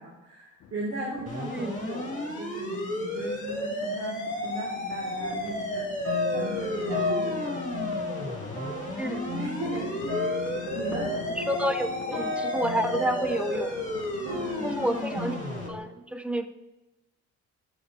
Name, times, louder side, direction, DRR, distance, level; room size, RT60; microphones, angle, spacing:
voice 1, 0.0-5.9 6.3-7.8 8.8-11.1 14.2-15.0, right 1 dB, 55° right, -5 dB, 1.8 m, -38 dB
sound 1, 0.6-15.4, left 8 dB, 55° left, 0.6 m, -47 dB
sound 2, 1.3-15.7, left 1 dB, 25° left, 2.3 m, -33 dB
sound 3, 5.0-15.8, left 3 dB, 85° right, 2.7 m, -34 dB
voice 2, 9.0-9.3 11.4-13.8 14.6-15.3 15.7-16.5, right 1 dB, 5° right, 9 dB, 0.4 m, -29 dB
11.0 x 5.8 x 2.4 m, 1.0 s
cardioid pair, 90°, 30 cm